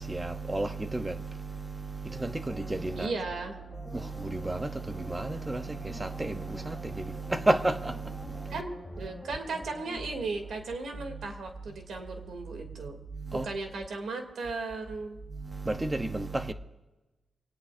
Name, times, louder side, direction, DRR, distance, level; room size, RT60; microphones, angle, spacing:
voice 1, 0.0-3.1 3.8-8.6 11.1-11.2 12.8-13.5 15.3-16.5, right 2 dB, 15° right, 0.7 m, -32 dB
sound 1, 2.1-11.5 11.8-11.9, left 1 dB, 5° left, 2.4 m, -48 dB
voice 2, 2.9-3.5 8.5-13.0 13.4-15.2, right 3 dB, 70° right, 2.6 m, -36 dB
25.5 x 18.5 x 2.6 m
wide cardioid pair, 170°, 0 cm